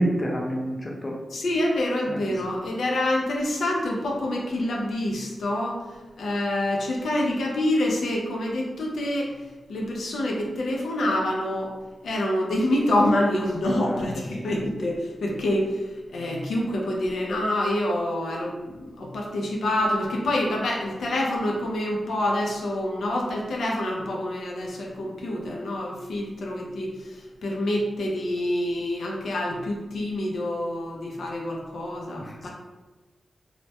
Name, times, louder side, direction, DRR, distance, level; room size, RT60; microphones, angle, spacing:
voice 1, 0.0-1.1 2.1-2.3 13.6-14.0, right 1 dB, 25° left, -1 dB, 0.4 m, -27 dB
voice 2, 1.3-5.8 6.2-9.3 9.7-11.7 12.0-15.8 16.1-26.9 27.4-32.5, left 1 dB, 90° left, -1 dB, 0.4 m, -26 dB
2.2 x 2.1 x 2.7 m, 1.2 s
wide cardioid pair, 105°, 0 cm